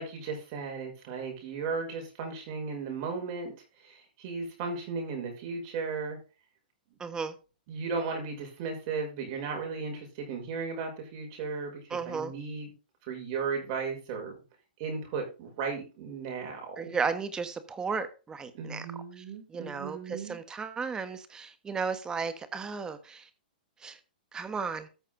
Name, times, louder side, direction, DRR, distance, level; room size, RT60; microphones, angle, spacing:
voice 1, 0.0-3.5 3.8-6.2 7.7-12.7 13.1-14.3 14.8-16.9 18.5-20.4, right 4 dB, 45° right, 6.0 m, -35 dB
voice 2, 7.0-7.3 11.9-12.3 16.8-18.9 19.2-19.3 19.5-23.3 23.8-24.0 24.3-24.9, right 5 dB, 15° right, 1.2 m, -34 dB
14.0 x 6.5 x 3.8 m
hypercardioid pair, 140°, 5 cm